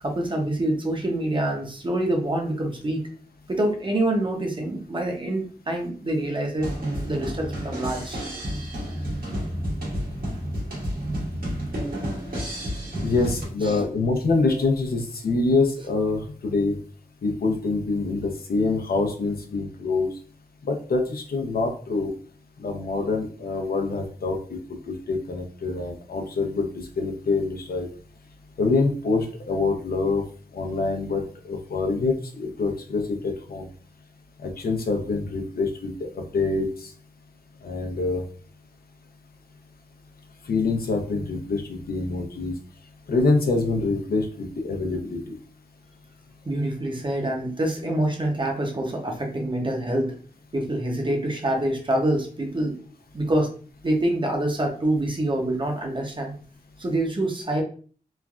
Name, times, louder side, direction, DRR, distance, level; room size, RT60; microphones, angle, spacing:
voice 1, 0.0-3.1 3.5-6.7 7.0-8.2 13.6-13.8 46.4-50.2 50.5-52.8 53.1-53.5 53.8-56.3 56.8-57.6, right 1 dB, 30° right, 2 dB, 0.6 m, -26 dB
sound 1, 6.6-13.5, equal, 70° right, 1.3 m, -30 dB
voice 2, 13.0-16.8 17.2-20.1 20.6-22.1 22.6-27.9 28.6-30.2 30.5-33.7 34.4-36.9 37.6-38.2 40.5-42.5 43.1-45.4, left 3 dB, 90° left, 3 dB, 0.6 m, -25 dB
3.1 x 2.4 x 2.3 m, 0.42 s
wide cardioid pair, 105°, 15 cm